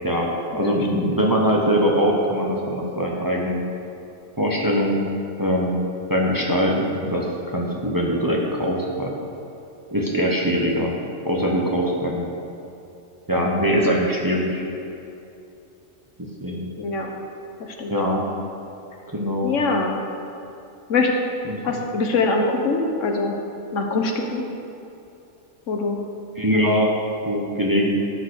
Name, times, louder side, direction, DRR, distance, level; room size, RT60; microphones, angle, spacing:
voice 1, 0.0-3.6 4.4-5.0 5.4-5.8 6.1-9.1 9.9-11.0 11.2-12.3 13.3-14.6 16.4-16.7 17.9-18.2 19.1-19.6 21.4-21.6 26.4-28.0, equal, 15° right, -2 dB, 1.0 m, -22 dB
voice 2, 0.5-1.0 16.8-17.1 17.6-17.9 19.4-20.0 20.9-21.1 21.6-23.3 23.7-24.4 25.7-26.0 26.5-26.7, left 3 dB, 70° left, 2 dB, 1.3 m, -23 dB
12.5 x 4.7 x 6.5 m, 2.8 s
omnidirectional pair, 1.3 m